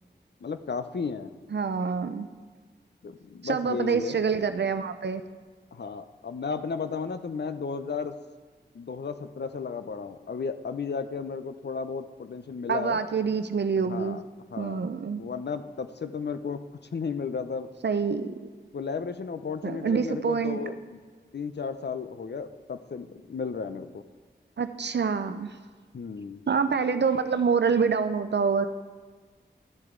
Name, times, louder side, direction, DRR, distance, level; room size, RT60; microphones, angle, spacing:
voice 1, 0.4-1.3 3.0-4.2 5.7-8.2 8.7-13.0 13.9-14.2 14.5-14.8 15.2-16.6 16.9-17.7 18.7-21.0 21.3-24.0 25.9-26.4, left 5 dB, 65° left, 10 dB, 0.6 m, -34 dB
voice 2, 1.5-2.3 3.4-5.2 12.7-14.2 14.6-15.2 17.8-18.4 19.6-20.6 24.6-25.5 26.5-28.7, right 5 dB, 65° right, 10 dB, 0.5 m, -26 dB
13.0 x 7.7 x 3.8 m, 1.5 s
cardioid pair, 40°, 19 cm